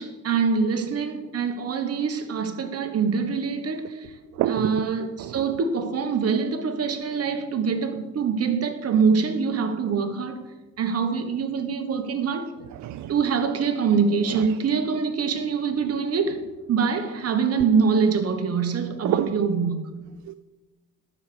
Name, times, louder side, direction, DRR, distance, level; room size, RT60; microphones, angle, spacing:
voice 1, 0.0-4.1 4.5-10.4 10.8-12.5 13.1-16.4 16.7-19.9, right 5 dB, 55° right, 1.3 m, -24 dB
voice 2, 4.3-4.9 5.2-5.5 12.7-13.1 14.3-14.5 19.0-19.4 20.3-20.4, right 12 dB, 70° right, 0.5 m, -28 dB
12.0 x 4.9 x 6.9 m
cardioid pair, 90°, 30 cm